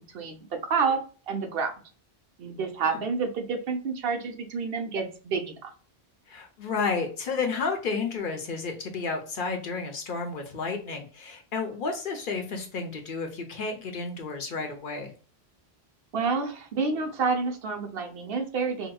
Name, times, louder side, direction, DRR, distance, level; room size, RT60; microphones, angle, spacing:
voice 1, 0.1-1.7 2.4-5.7 16.1-18.9, right 4 dB, 65° right, 5 dB, 0.8 m, -29 dB
voice 2, 6.3-15.1, left 4 dB, 55° left, 4 dB, 0.8 m, -31 dB
4.7 x 2.1 x 2.2 m, 0.39 s
omnidirectional pair, 1.1 m